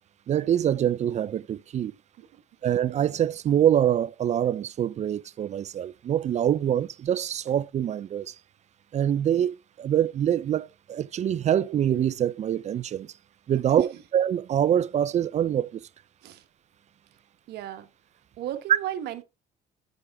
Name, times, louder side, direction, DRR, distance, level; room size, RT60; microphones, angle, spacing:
voice 1, 0.3-1.9 2.6-8.3 8.9-13.1 13.5-15.8, right 10 dB, 40° right, 0.5 m, -25 dB
voice 2, 17.5-17.9 18.4-19.2, right 12 dB, 75° right, 1.2 m, -35 dB
7.8 x 6.2 x 3.5 m
cardioid pair, 110°, 17 cm